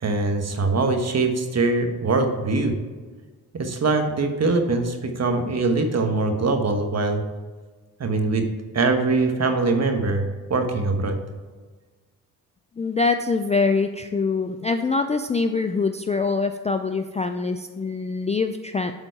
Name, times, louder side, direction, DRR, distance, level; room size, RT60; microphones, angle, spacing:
voice 1, 0.0-2.7 3.5-7.2 8.0-8.4 8.7-11.2, right 3 dB, 40° right, 5 dB, 1.2 m, -22 dB
voice 2, 12.8-18.9, left 4 dB, 20° left, 7 dB, 0.3 m, -24 dB
8.2 x 3.9 x 4.6 m, 1.4 s
supercardioid pair, 60°, 40 cm